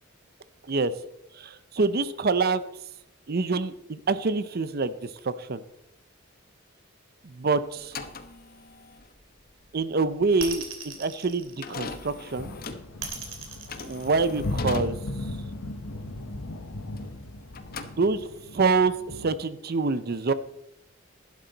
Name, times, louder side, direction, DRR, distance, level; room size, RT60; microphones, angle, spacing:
voice 1, 1.3-2.6 3.3-5.6 7.2-8.0 9.7-12.5 13.8-15.0 18.0-20.3, right 4 dB, 45° right, 14 dB, 0.6 m, -26 dB
sound 1, 7.8-17.2 17.5-18.5, left 4 dB, 45° left, 1.1 m, -41 dB
sound 2, 10.4-12.1 13.0-14.8, right 7 dB, 65° right, 2.7 m, -38 dB
sound 3, 12.3-19.4, left 2 dB, 85° left, 1.0 m, -36 dB
12.0 x 11.5 x 4.0 m, 0.81 s
head